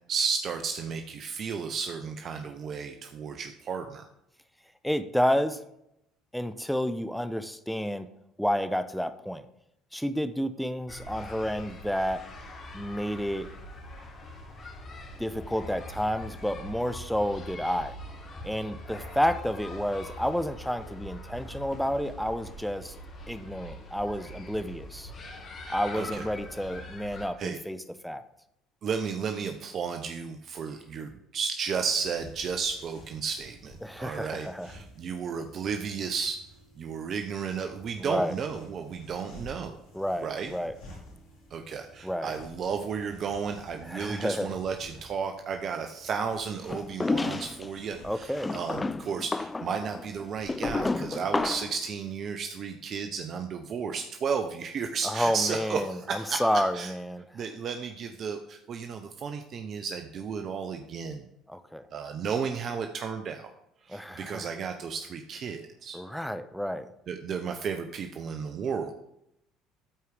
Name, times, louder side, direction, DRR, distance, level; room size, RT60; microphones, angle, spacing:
voice 1, 0.1-4.1 25.7-26.2 27.4-27.6 28.8-36.4 36.8-39.8 40.2-40.5 41.5-56.4 56.7-56.9 57.3-61.3 61.9-63.5 63.8-66.0 67.1-68.9, right 6 dB, 50° right, 6 dB, 0.7 m, -33 dB
voice 2, 4.8-5.6 6.3-8.1 8.4-9.5 9.9-12.2 12.7-13.5 15.2-18.0 18.4-22.9 23.3-25.1 25.7-28.2 33.8-34.7 38.0-38.3 39.9-40.7 42.0-42.3 43.9-44.6 48.0-48.5 55.0-57.2 61.5-61.8 63.9-64.5 65.9-66.9, equal, ahead, 11 dB, 0.8 m, -30 dB
sound 1, 10.9-27.3, left 1 dB, 45° left, 2.0 m, -43 dB
sound 2, 31.7-51.5, equal, 70° left, 3.7 m, -51 dB
sound 3, 46.7-47.7 48.3-51.8, left 3 dB, 20° left, 0.4 m, -31 dB
13.0 x 4.7 x 3.5 m, 0.80 s
hypercardioid pair, 70°, 0 cm